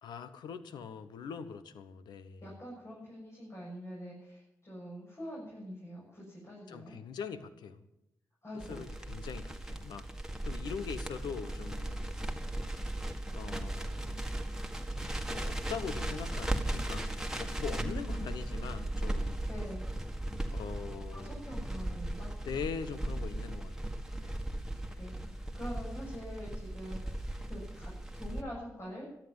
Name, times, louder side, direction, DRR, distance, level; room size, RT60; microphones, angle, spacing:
voice 1, 0.0-2.5 6.7-7.8 8.7-10.1 10.5-12.3 13.3-14.3 15.3-19.4 20.5-21.5 22.4-23.8 24.2-24.3, left 6 dB, 85° left, 12 dB, 1.0 m, -42 dB
voice 2, 2.4-7.0 8.4-8.9 17.7-18.2 19.5-19.8 21.1-22.3 24.9-29.1, equal, 40° left, -5 dB, 7.0 m, -45 dB
Crackle, 8.6-28.4, right 1 dB, 5° right, 1.9 m, -37 dB
13.0 x 12.0 x 7.2 m, 0.84 s
supercardioid pair, 45°, 7 cm